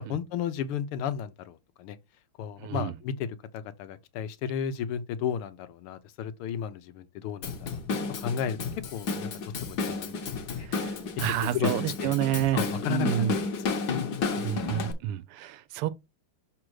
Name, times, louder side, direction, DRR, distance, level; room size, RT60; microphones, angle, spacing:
voice 1, 0.0-2.0 2.4-7.8 8.2-8.6 8.9-10.7 11.4-12.1 12.5-13.3, left 8 dB, 80° left, 1.7 m, -34 dB
voice 2, 2.6-2.9 10.6-13.3 14.3-15.9, right 12 dB, 90° right, 1.6 m, -29 dB
Drum kit / Drum, 7.4-14.9, left 4 dB, 55° left, 1.5 m, -32 dB
6.2 x 4.2 x 4.7 m
omnidirectional pair, 2.4 m